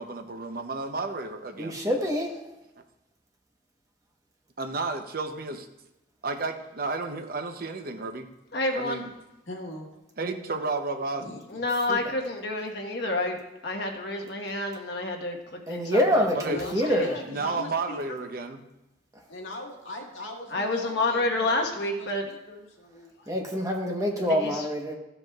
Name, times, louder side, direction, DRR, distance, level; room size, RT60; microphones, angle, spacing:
voice 1, 0.0-1.8 4.6-5.7 6.2-8.3 8.7-9.1 10.2-11.2 16.3-16.6 17.3-18.6, right 3 dB, 50° right, 6 dB, 0.7 m, -32 dB
voice 2, 1.6-2.4 11.9-12.1 15.7-17.2 23.3-24.9, equal, 15° right, 1 dB, 1.1 m, -26 dB
voice 3, 8.5-9.0 11.5-13.4 13.6-15.4 15.7-16.2 16.5-17.1 20.5-22.2 24.4-24.6, left 2 dB, 60° left, 2 dB, 1.3 m, -29 dB
voice 4, 9.5-9.9 11.2-11.4 16.5-18.2 19.3-23.7 24.1-24.4, left 1 dB, 85° left, 0 dB, 1.7 m, -41 dB
14.0 x 7.7 x 2.4 m, 0.95 s
head